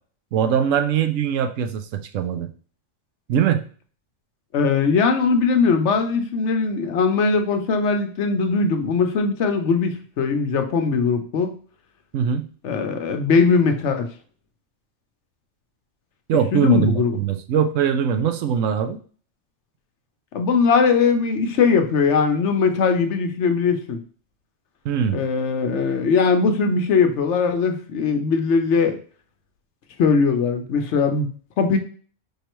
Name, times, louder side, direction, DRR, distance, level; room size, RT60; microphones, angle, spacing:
voice 1, 0.3-2.5 3.3-3.6 12.1-12.5 16.3-19.0 24.8-25.2, right 8 dB, 85° right, 8 dB, 1.0 m, -21 dB
voice 2, 4.5-11.5 12.6-14.1 16.5-17.2 20.3-24.0 25.1-28.9 30.0-31.3 31.6-31.8, left 5 dB, 70° left, 6 dB, 1.0 m, -20 dB
5.2 x 3.2 x 3.0 m, 0.42 s
omnidirectional pair, 1.3 m